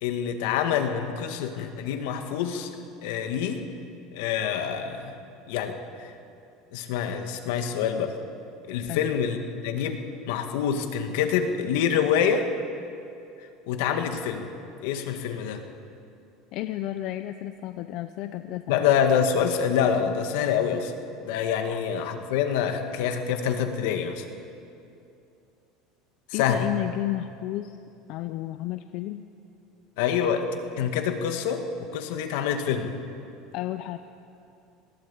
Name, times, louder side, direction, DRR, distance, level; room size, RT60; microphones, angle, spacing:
voice 1, 0.0-2.8 3.0-3.6 4.1-5.2 5.5-6.1 6.7-8.1 8.7-9.4 9.6-10.0 10.3-12.5 13.7-14.4 14.8-15.6 18.7-20.9 21.2-24.2 26.3-26.7 30.0-30.5 30.8-32.9, left 8 dB, 75° left, 6 dB, 1.9 m, -26 dB
voice 2, 16.5-18.9 21.7-21.8 26.3-27.8 28.1-29.2 33.5-34.0, left 14 dB, 50° left, 10 dB, 0.6 m, -32 dB
20.0 x 16.5 x 8.5 m, 2.6 s
cardioid pair, 170°, 0 cm